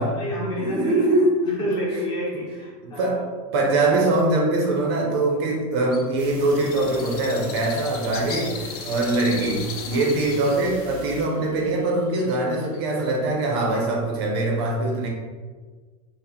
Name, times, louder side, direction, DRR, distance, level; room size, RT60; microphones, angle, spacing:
voice 1, 0.0-1.1 1.5-3.2 9.9-10.1, equal, 20° left, -5 dB, 0.8 m, -29 dB
voice 2, 0.6-1.6 2.3-2.4 2.8-3.2 3.5-15.1, right 2 dB, 40° right, 0 dB, 0.6 m, -23 dB
Bird, 5.9-13.1, left 6 dB, 80° left, 0.6 m, -38 dB
sound 1, 6.2-11.2, equal, 10° right, 0.7 m, -41 dB
4.3 x 2.1 x 3.6 m, 1.5 s
supercardioid pair, 180°, 19 cm